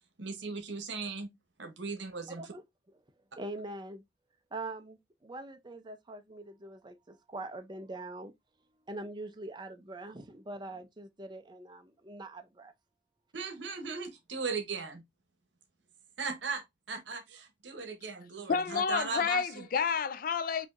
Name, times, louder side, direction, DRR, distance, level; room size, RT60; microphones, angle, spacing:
voice 1, 0.2-1.3 1.6-2.5 13.3-15.0 16.2-19.7, right 4 dB, 70° right, 0.9 m, -38 dB
voice 2, 2.3-2.6 3.4-4.0 4.5-8.3 8.9-12.7, right 2 dB, 25° right, 0.5 m, -43 dB
voice 3, 18.5-20.7, left 6 dB, 50° left, 0.5 m, -30 dB
5.0 x 2.7 x 2.5 m
head